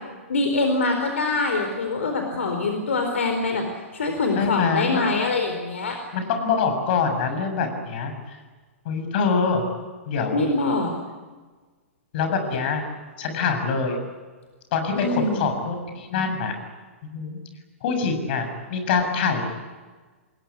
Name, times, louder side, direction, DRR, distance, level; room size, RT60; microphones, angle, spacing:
voice 1, 0.3-3.7 3.9-6.0 10.3-10.9 14.9-15.4, left 3 dB, 70° left, 4 dB, 4.3 m, -24 dB
voice 2, 4.4-5.0 6.1-8.4 8.9-9.6 10.1-10.4 12.1-12.8 13.2-14.0 14.7-16.6 17.0-17.4 17.8-19.4, left 5 dB, 50° left, 6 dB, 7.2 m, -25 dB
28.5 x 20.5 x 9.8 m, 1.4 s
figure-of-eight pair, 110°, 7 cm